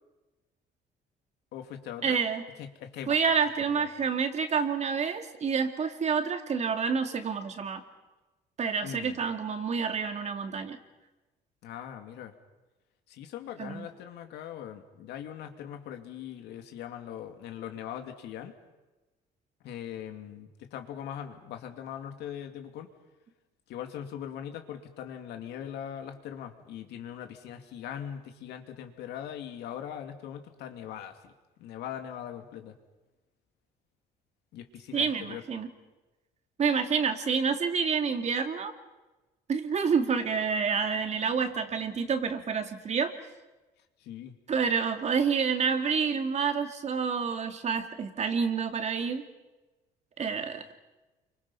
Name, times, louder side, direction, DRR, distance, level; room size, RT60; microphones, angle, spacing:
voice 1, 1.5-2.2 2.6-3.3 3.6-3.9 8.8-9.2 11.6-12.3 13.1-18.5 19.6-22.9 23.7-31.3 31.6-32.7 34.5-35.4 44.0-44.3, left 9 dB, 80° left, 6 dB, 2.6 m, -41 dB
voice 2, 2.0-2.4 3.1-7.8 8.6-10.8 13.6-13.9 34.9-35.7 36.6-38.7 39.5-43.1 44.5-49.2 50.2-50.6, right 6 dB, 40° right, 7 dB, 2.4 m, -28 dB
28.5 x 25.0 x 5.7 m, 1.1 s
cardioid pair, 110°, 17 cm